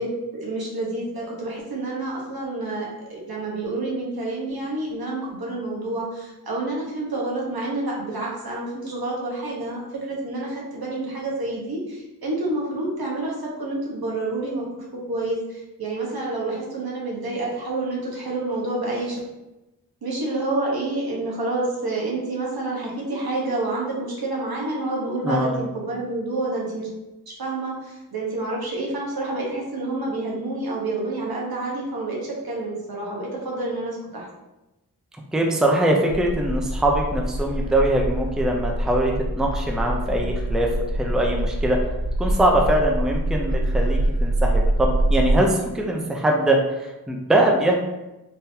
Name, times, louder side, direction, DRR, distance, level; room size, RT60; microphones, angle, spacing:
voice 1, 0.0-19.2 20.0-26.9 27.3-34.3, right 2 dB, 65° right, -4 dB, 1.2 m, -28 dB
voice 2, 25.2-25.6 35.3-40.7 41.0-41.8 42.2-47.7, right 1 dB, ahead, 0 dB, 0.6 m, -22 dB
sound 1, 36.1-45.4, right 1 dB, 45° right, 0.6 m, -24 dB
3.8 x 2.6 x 2.7 m, 0.99 s
cardioid pair, 40°, 39 cm